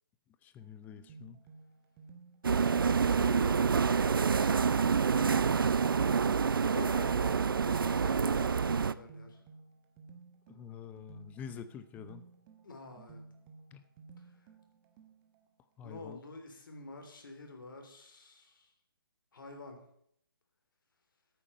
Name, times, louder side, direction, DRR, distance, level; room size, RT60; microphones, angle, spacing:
voice 1, 0.4-1.4 10.5-12.2 13.7-13.8 15.8-16.2, left 8 dB, 15° left, 11 dB, 0.7 m, -47 dB
sound 1, 0.6-15.5, right 4 dB, 25° right, 1.4 m, -55 dB
sound 2, 2.4-8.9, right 6 dB, 70° right, 0.5 m, -27 dB
voice 2, 3.1-4.8 6.7-9.4 12.6-13.2 14.2-14.3 15.8-18.7 19.3-19.8, left 3 dB, 60° left, 4 dB, 3.5 m, -47 dB
14.0 x 9.1 x 5.5 m, 0.70 s
figure-of-eight pair, 140°, 12 cm